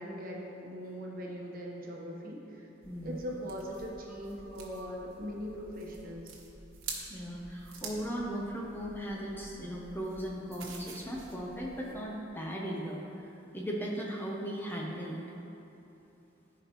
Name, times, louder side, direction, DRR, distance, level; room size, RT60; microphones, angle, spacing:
voice 1, 0.0-2.7 3.0-6.4, equal, 45° right, -2 dB, 1.1 m, -41 dB
sound 1, 2.8-12.1, right 4 dB, 85° right, 1.3 m, -48 dB
voice 2, 2.9-3.2 4.7-4.9 7.1-13.3 13.5-15.2, equal, 10° left, -2 dB, 0.7 m, -37 dB
14.5 x 5.0 x 3.0 m, 2.9 s
head